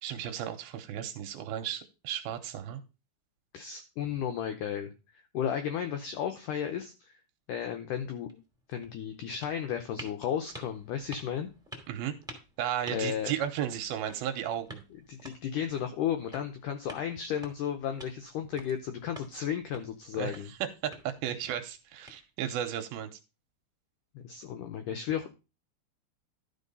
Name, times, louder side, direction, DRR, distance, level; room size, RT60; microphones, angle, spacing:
voice 1, 0.0-2.8 11.9-12.1 12.6-14.8 20.2-20.3 20.8-23.1, right 10 dB, 75° right, 7 dB, 2.5 m, -34 dB
voice 2, 3.5-7.2 7.5-8.4 8.7-11.5 12.9-13.3 15.1-20.5 24.2-25.3, left 9 dB, 85° left, 7 dB, 1.8 m, -34 dB
sound 1, 8.3-22.7, right 1 dB, ahead, 1.5 m, -51 dB
12.5 x 4.6 x 5.4 m, 0.30 s
omnidirectional pair, 4.8 m